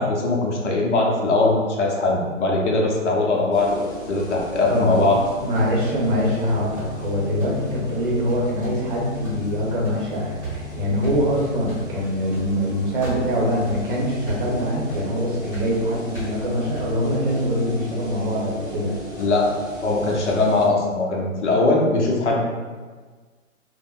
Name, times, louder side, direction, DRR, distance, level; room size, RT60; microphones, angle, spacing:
voice 1, 0.0-5.2 19.2-19.5 19.8-22.4, left 2 dB, 60° left, -2 dB, 0.7 m, -21 dB
sound 1, 3.3-5.2 5.5-6.5 6.8-7.1 7.4-7.7 8.0-8.3 8.6-17.6, right 3 dB, 5° right, 1.2 m, -37 dB
sound 2, 3.5-20.7, left 1 dB, 25° left, 1.0 m, -38 dB
voice 2, 4.7-5.1 5.4-18.9, equal, 40° right, -4 dB, 0.7 m, -23 dB
3.4 x 2.1 x 2.3 m, 1.4 s
hypercardioid pair, 140°, 40 cm